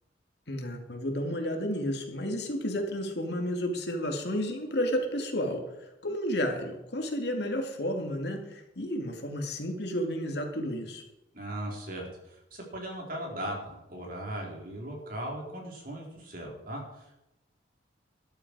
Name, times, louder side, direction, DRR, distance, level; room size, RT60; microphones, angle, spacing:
voice 1, 0.5-11.0, equal, 60° left, 3 dB, 2.4 m, -32 dB
voice 2, 11.3-17.2, right 1 dB, 50° right, -1 dB, 4.2 m, -38 dB
13.0 x 12.0 x 4.8 m, 0.89 s
head